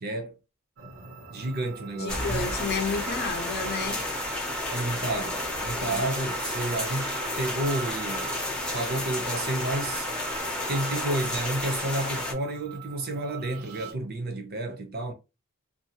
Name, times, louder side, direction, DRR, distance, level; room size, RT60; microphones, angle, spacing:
voice 1, 0.0-0.4 1.3-2.5 4.7-8.3 8.7-10.1 10.7-15.1, right 1 dB, 45° right, 0.6 m, -31 dB
sound 1, 0.8-13.9, right 9 dB, 80° right, 0.7 m, -43 dB
voice 2, 1.9-4.1 5.8-6.0, left 4 dB, 50° left, 0.6 m, -31 dB
sound 2, 2.1-12.3, left 1 dB, 5° left, 0.6 m, -31 dB
2.5 x 2.3 x 2.8 m
head